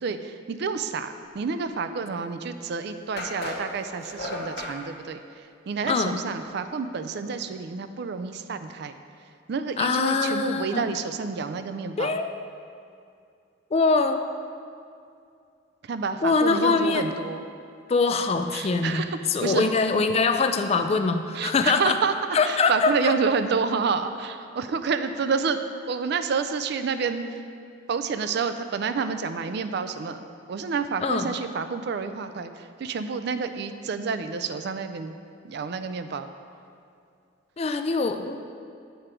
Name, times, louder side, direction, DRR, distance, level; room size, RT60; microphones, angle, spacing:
voice 1, 0.5-5.2 5.7-8.9 9.5-12.2 15.9-17.4 18.5-19.1 19.4-19.7 21.4-22.1 22.5-25.6 25.9-27.2 27.9-30.2 30.5-32.5 32.8-35.1 35.4-36.3, right 5 dB, 60° right, 10 dB, 0.4 m, -29 dB
sound 1, 2.3-2.4 3.2-4.8, left 2 dB, 55° left, 1.1 m, -34 dB
voice 2, 5.8-6.2 9.8-10.9 12.0-12.4 13.7-14.3 16.2-17.1 17.9-22.0 22.3-23.1 31.0-31.4 37.6-38.4, left 4 dB, 30° left, 7 dB, 0.3 m, -23 dB
7.9 x 5.0 x 4.4 m, 2.5 s
head